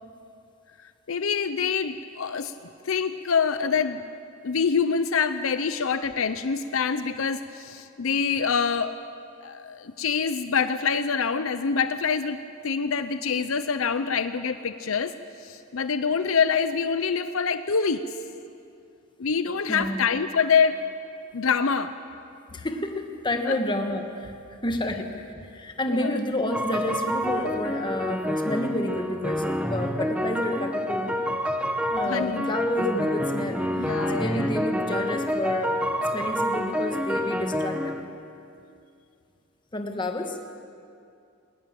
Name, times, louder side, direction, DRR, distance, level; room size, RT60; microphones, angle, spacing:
voice 1, 1.1-2.5 2.8-4.0 4.4-9.0 9.4-18.0 19.2-20.8 21.3-21.9 23.5-23.6 25.9-26.1 32.0-32.5 33.8-34.5, left 6 dB, 70° left, 11 dB, 0.7 m, -25 dB
voice 2, 19.7-20.1 22.5-24.3 24.6-25.2 25.5-31.2 31.9-33.9 34.2-35.8 36.1-37.9 39.7-40.4, left 1 dB, 25° left, 5 dB, 1.6 m, -30 dB
sound 1, 26.5-38.0, equal, 5° right, 1.2 m, -28 dB
19.5 x 19.0 x 7.7 m, 2.5 s
head